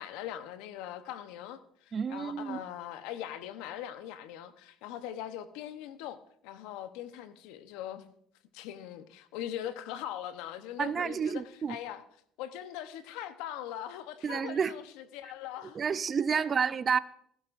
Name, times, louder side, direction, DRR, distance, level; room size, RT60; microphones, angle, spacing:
voice 1, 0.0-6.2 6.4-8.1 8.5-11.4 11.7-12.0 12.4-16.0 16.4-16.5, left 11 dB, 75° left, 0.9 m, -41 dB
voice 2, 1.9-2.6 10.8-11.8 14.2-14.8 15.7-17.0, right 6 dB, 40° right, 0.5 m, -30 dB
15.5 x 15.0 x 2.6 m
supercardioid pair, 75°, 0 cm